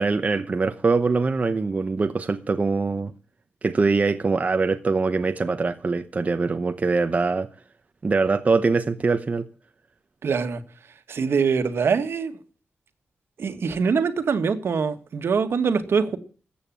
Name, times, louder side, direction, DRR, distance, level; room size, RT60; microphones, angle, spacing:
voice 1, 0.0-3.1 3.6-7.5 8.0-9.4, right 4 dB, 35° right, 0.8 m, -23 dB
voice 2, 10.2-10.6 11.1-12.3 13.4-16.2, right 5 dB, 75° right, 1.6 m, -23 dB
14.0 x 8.7 x 7.3 m
wide cardioid pair, 115°, 4 cm